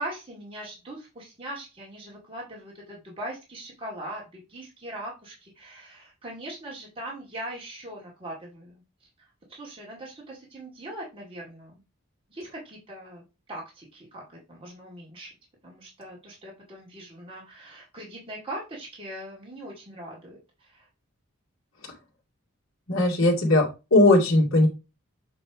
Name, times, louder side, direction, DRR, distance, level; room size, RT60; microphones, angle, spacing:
voice 1, 0.0-8.8 9.2-11.8 12.3-15.3 15.6-20.9, right 1 dB, 25° right, -3 dB, 2.2 m, -40 dB
voice 2, 22.9-24.7, left 2 dB, 90° left, -3 dB, 2.2 m, -19 dB
8.4 x 3.4 x 4.6 m, 0.28 s
head